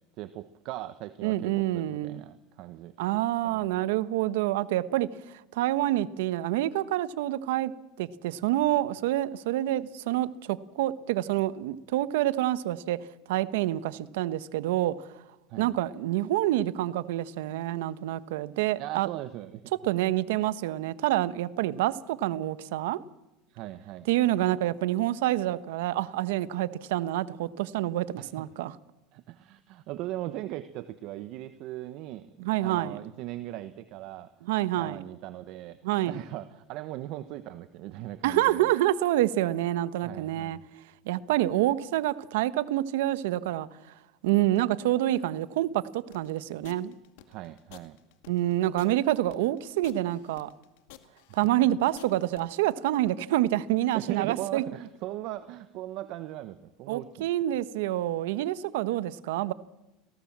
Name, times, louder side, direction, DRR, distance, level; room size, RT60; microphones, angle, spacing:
voice 1, 0.2-2.9 3.4-3.8 15.5-15.7 18.8-19.7 23.5-24.1 28.2-28.4 29.1-34.3 34.8-35.8 36.0-38.7 40.0-40.6 47.3-48.0 53.9-57.3, right 14 dB, 55° right, 1.2 m, -39 dB
voice 2, 1.2-2.2 3.0-7.7 8.0-13.0 13.3-14.9 15.6-19.1 19.8-23.0 24.1-28.7 32.4-33.0 34.5-35.0 35.8-36.2 38.2-40.6 41.0-43.7 44.2-46.9 48.3-50.5 51.3-54.6 56.9-59.5, right 14 dB, 80° right, 1.2 m, -27 dB
sound 1, 46.1-52.4, left 17 dB, 70° left, 2.2 m, -51 dB
27.5 x 18.0 x 7.5 m
supercardioid pair, 125°, 0 cm